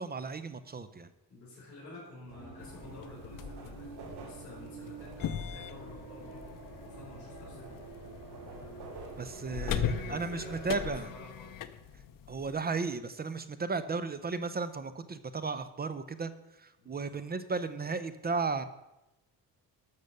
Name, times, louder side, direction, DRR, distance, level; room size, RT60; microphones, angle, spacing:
voice 1, 0.0-1.1 9.2-11.1 11.9-12.0 12.3-18.6, right 4 dB, 25° right, 13 dB, 0.6 m, -35 dB
voice 2, 1.3-6.5 6.8-7.7 9.4-11.6 16.8-17.2, left 2 dB, 35° left, -10 dB, 5.3 m, -50 dB
sound 1, 2.3-11.0, right 4 dB, 75° right, 2.6 m, -47 dB
sound 2, 2.6-12.6, left 8 dB, 55° left, 0.8 m, -40 dB
12.0 x 6.7 x 6.7 m, 0.95 s
cardioid pair, 125°, 39 cm